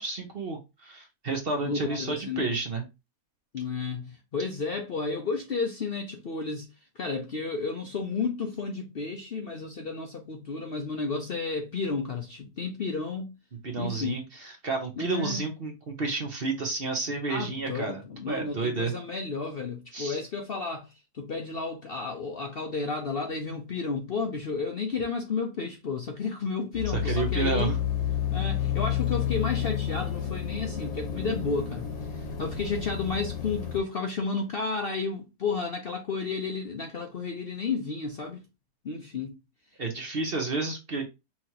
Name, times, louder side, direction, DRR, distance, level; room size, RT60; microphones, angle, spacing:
voice 1, 0.0-2.8 13.6-18.9 19.9-20.2 26.9-27.8 39.8-41.1, right 3 dB, 45° right, 0.9 m, -31 dB
voice 2, 1.7-2.5 3.5-6.7 7.0-13.3 13.8-14.2 15.0-15.5 17.3-27.8 28.3-38.4 38.8-39.4, left 4 dB, 50° left, 0.7 m, -32 dB
sound 1, 26.7-33.8, left 10 dB, 65° left, 1.5 m, -30 dB
5.7 x 3.0 x 2.8 m
omnidirectional pair, 1.6 m